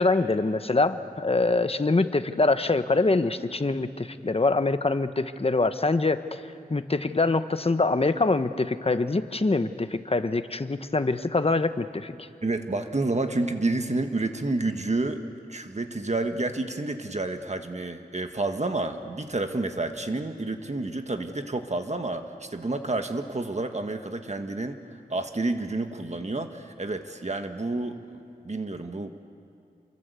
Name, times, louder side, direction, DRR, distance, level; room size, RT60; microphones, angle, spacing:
voice 1, 0.0-6.4 6.7-12.3, left 3 dB, 35° left, 10 dB, 1.1 m, -24 dB
voice 2, 12.4-15.2 15.5-24.8 25.1-29.1, right 2 dB, 45° right, 6 dB, 1.5 m, -29 dB
27.5 x 23.5 x 8.3 m, 2.5 s
wide cardioid pair, 70°, 16 cm